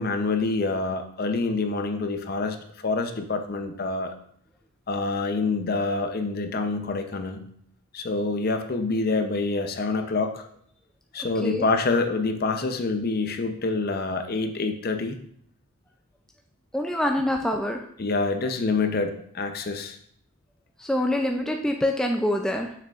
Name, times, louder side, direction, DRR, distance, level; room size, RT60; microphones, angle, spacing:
voice 1, 0.0-4.1 4.9-7.4 7.9-10.4 11.1-15.2 18.0-20.0, left 3 dB, 45° left, 6 dB, 0.6 m, -26 dB
voice 2, 16.7-17.8 20.8-22.7, left 1 dB, 5° left, 2 dB, 0.3 m, -25 dB
6.4 x 6.4 x 2.4 m, 0.65 s
head